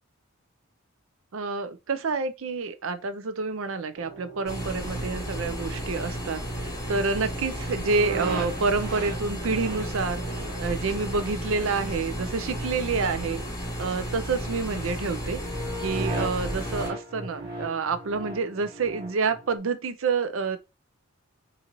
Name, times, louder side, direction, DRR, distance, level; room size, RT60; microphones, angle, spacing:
voice 1, 1.3-13.4 13.8-15.4 15.8-20.6, right 4 dB, 65° right, 0.5 m, -28 dB
sound 1, 4.0-13.4 13.7-14.1 14.5-14.8 15.3-19.6, right 2 dB, 45° right, 1.0 m, -39 dB
sound 2, 4.5-16.9, equal, 15° left, 1.1 m, -33 dB
3.9 x 2.6 x 2.9 m
head